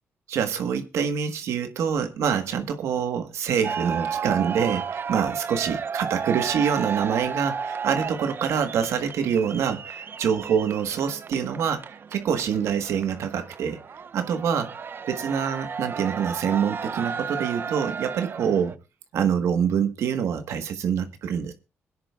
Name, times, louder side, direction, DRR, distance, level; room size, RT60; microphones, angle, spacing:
voice 1, 0.3-13.8 14.1-14.7 15.1-18.7 19.1-21.5, right 7 dB, 80° right, 1.4 m, -26 dB
sound 1, 3.6-18.8, right 6 dB, 50° right, 0.6 m, -33 dB
25.5 x 10.0 x 2.4 m
cardioid pair, 65°, 5 cm